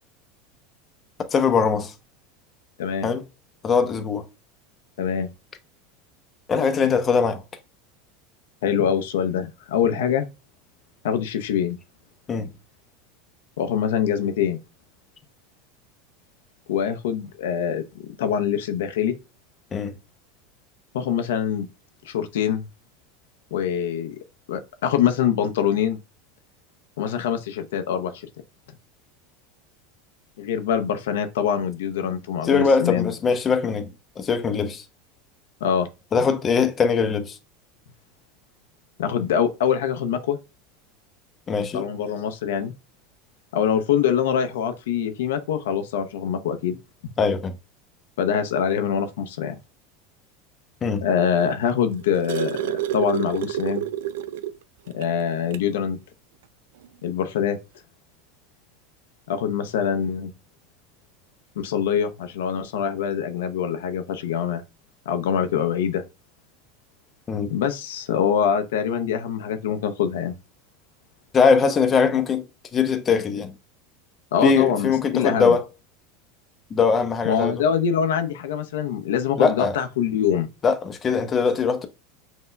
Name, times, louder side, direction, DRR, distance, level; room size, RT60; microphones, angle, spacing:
voice 1, 1.3-1.9 3.0-3.2 3.6-4.2 6.5-7.4 12.3-12.5 19.7-20.0 32.4-34.8 36.1-37.4 41.5-41.8 47.2-47.5 50.8-51.0 67.3-67.5 71.3-72.4 72.7-73.5 74.4-75.6 76.7-77.6 79.4-79.8 80.6-81.9, left 5 dB, 30° left, 0.7 m, -21 dB
voice 2, 5.0-5.3 8.6-10.3 11.0-11.8 13.6-14.6 16.7-17.8 18.2-19.1 20.9-21.7 22.1-22.7 23.5-24.2 24.5-26.0 27.0-28.1 30.4-33.1 35.6-35.9 39.0-40.4 41.7-42.7 43.5-46.8 48.2-49.6 51.0-53.8 54.9-56.0 57.0-57.6 59.3-60.3 61.6-64.6 65.1-66.0 67.5-70.3 74.3-75.6 77.2-80.5, left 8 dB, 85° left, 0.6 m, -24 dB
sound 1, 51.7-54.6 55.0-55.1 55.5-55.7 56.8-56.9, right 12 dB, 85° right, 0.3 m, -28 dB
5.6 x 2.8 x 2.2 m
supercardioid pair, 120°, 0 cm